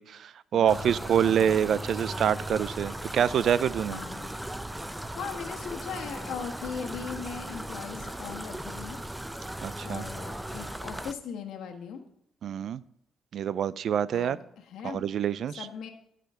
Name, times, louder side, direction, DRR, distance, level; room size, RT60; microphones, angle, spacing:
voice 1, 0.0-4.0 9.6-10.1 12.4-12.8 13.3-14.4 14.8-15.7, right 9 dB, 65° right, 18 dB, 0.4 m, -26 dB
voice 2, 0.5-1.2 3.9-4.3 4.8-9.0 9.8-12.0 14.1-15.0 15.6-15.9, left 6 dB, 80° left, 4 dB, 1.4 m, -39 dB
sound 1, 0.7-11.1, right 1 dB, 5° right, 0.6 m, -37 dB
12.5 x 5.0 x 6.8 m, 0.74 s
cardioid pair, 90°, 0 cm